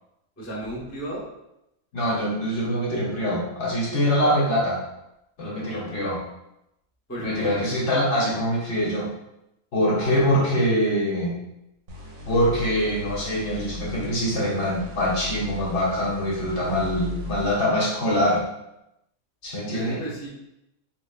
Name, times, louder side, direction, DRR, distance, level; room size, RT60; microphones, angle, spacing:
voice 1, 0.4-1.2 7.1-7.7 9.9-10.5 19.7-20.3, right 1 dB, 15° left, -6 dB, 0.7 m, -34 dB
voice 2, 1.9-4.8 5.4-6.2 7.2-9.1 9.7-11.3 12.3-18.4 19.4-20.0, equal, 55° left, -5 dB, 1.2 m, -24 dB
sound 1, 11.9-18.3, left 4 dB, 80° right, 1.5 m, -38 dB
3.9 x 3.3 x 2.3 m, 0.85 s
omnidirectional pair, 1.5 m